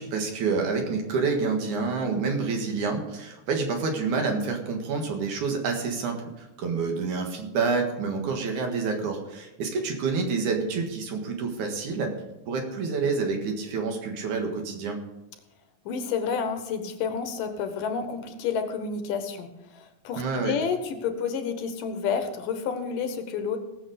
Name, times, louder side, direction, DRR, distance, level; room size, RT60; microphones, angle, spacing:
voice 1, 0.0-12.1 12.5-15.0 20.2-20.6, right 4 dB, 65° right, 3 dB, 2.9 m, -28 dB
voice 2, 15.9-19.5 19.7-23.6, left 6 dB, 75° left, 7 dB, 2.7 m, -30 dB
18.0 x 7.4 x 5.0 m, 0.97 s
omnidirectional pair, 3.9 m